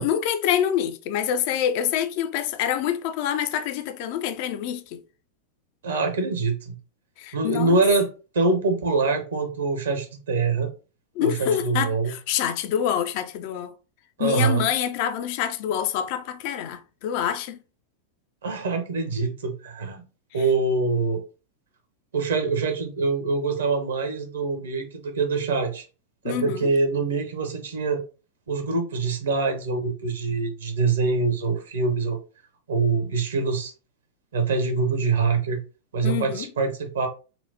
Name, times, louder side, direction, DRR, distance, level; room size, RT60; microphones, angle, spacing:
voice 1, 0.0-5.0 7.2-7.8 11.2-13.7 14.2-17.6 26.2-26.7 36.0-36.5, left 9 dB, 45° left, 0.4 m, -26 dB
voice 2, 5.8-6.7 7.3-8.1 8.3-10.7 11.2-12.1 14.2-14.6 18.4-20.0 20.3-21.2 22.1-25.9 26.2-28.0 28.5-32.2 32.7-33.7 34.3-35.6 35.9-37.1, right 4 dB, 65° right, 0.8 m, -24 dB
4.2 x 2.1 x 2.7 m
figure-of-eight pair, 90°, 0 cm